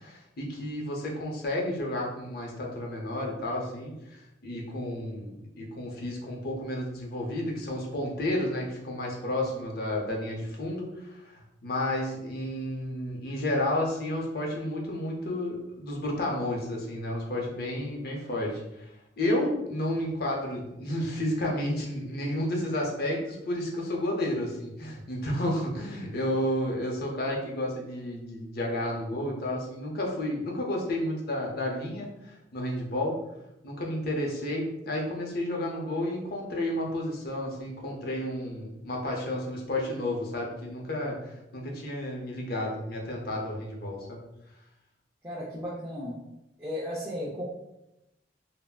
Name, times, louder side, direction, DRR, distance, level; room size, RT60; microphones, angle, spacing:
voice 1, 0.0-33.2 33.6-44.2, left 1 dB, 55° left, -1 dB, 0.6 m, -31 dB
voice 2, 45.2-46.2 46.6-47.4, equal, 15° right, -9 dB, 0.5 m, -35 dB
3.5 x 2.0 x 2.3 m, 0.88 s
head